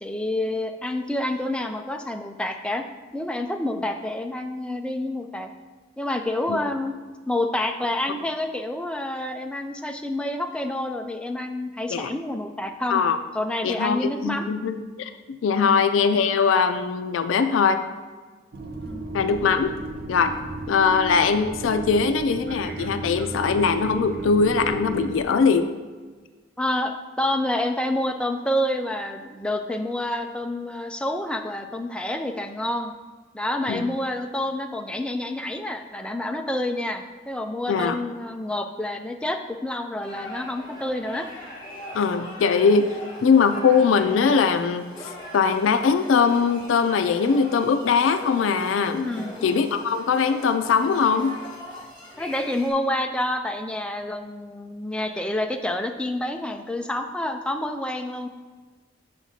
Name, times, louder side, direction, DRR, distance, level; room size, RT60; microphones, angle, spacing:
voice 1, 0.0-2.8 3.1-5.5 6.0-6.9 7.3-13.0 13.3-14.5 15.5-15.9 18.8-19.1 20.9-21.0 26.6-32.9 33.3-41.3 49.0-49.3 52.2-58.3, left 1 dB, 5° left, 4 dB, 0.3 m, -28 dB
voice 2, 13.6-15.1 15.4-17.8 19.1-19.7 20.1-20.3 20.7-25.7 33.7-33.8 37.7-38.0 41.9-42.9 43.2-44.9 45.3-49.1 49.4-51.3, left 5 dB, 90° left, 9 dB, 0.4 m, -21 dB
sound 1, 18.5-25.2, right 2 dB, 50° right, 0.6 m, -34 dB
sound 2, 40.0-52.7, left 1 dB, 25° left, 1.4 m, -41 dB
7.4 x 5.8 x 2.8 m, 1.4 s
head